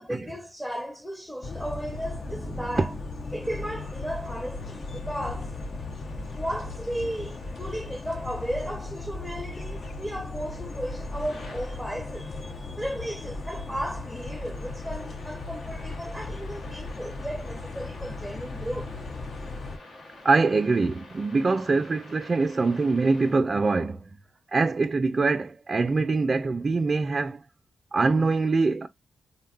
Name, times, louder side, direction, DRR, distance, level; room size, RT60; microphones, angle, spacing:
voice 1, 0.0-2.9 3.3-5.6 6.3-18.9, equal, 5° left, 0.5 m, -35 dB
sound 1, 1.4-19.8, left 3 dB, 55° left, 0.4 m, -37 dB
voice 2, 2.5-2.9 20.2-24.1 24.5-27.4 27.9-28.9, right 3 dB, 45° right, 0.3 m, -24 dB
sound 2, 3.4-23.4, left 2 dB, 75° left, 0.8 m, -49 dB
3.4 x 2.2 x 2.3 m
cardioid pair, 60°, 0 cm